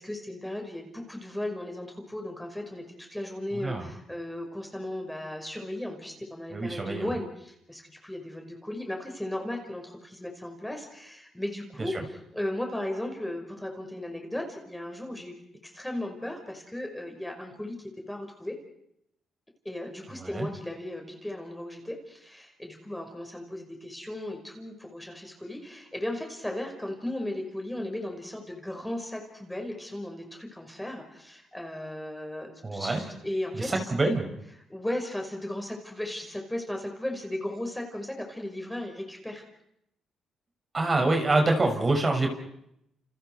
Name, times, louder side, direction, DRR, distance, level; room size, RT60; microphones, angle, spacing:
voice 1, 0.0-11.9 12.3-15.4 15.6-17.8 18.1-18.6 19.7-33.9 34.7-39.4, left 1 dB, 5° left, 3 dB, 5.4 m, -36 dB
voice 2, 6.5-7.1 11.9-12.0 20.2-20.5 32.6-33.0 33.5-34.2 40.7-42.3, right 2 dB, 30° right, 3 dB, 6.5 m, -26 dB
29.5 x 29.5 x 4.7 m, 0.77 s
cardioid pair, 90°, 0 cm